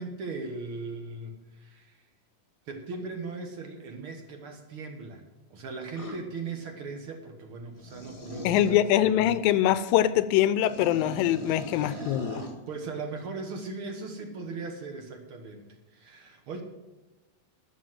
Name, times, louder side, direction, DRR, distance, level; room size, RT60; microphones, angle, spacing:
voice 1, 0.0-2.0 2.7-5.2 5.5-9.4 11.8-15.6 15.9-16.6, right 3 dB, 55° right, 4 dB, 1.6 m, -39 dB
sound 1, 6.0-6.2 7.7-8.8 10.6-12.6, equal, 25° left, 0.6 m, -40 dB
voice 2, 8.5-12.4, left 12 dB, 85° left, 15 dB, 2.3 m, -23 dB
13.0 x 7.2 x 7.6 m, 1.1 s
omnidirectional pair, 4.1 m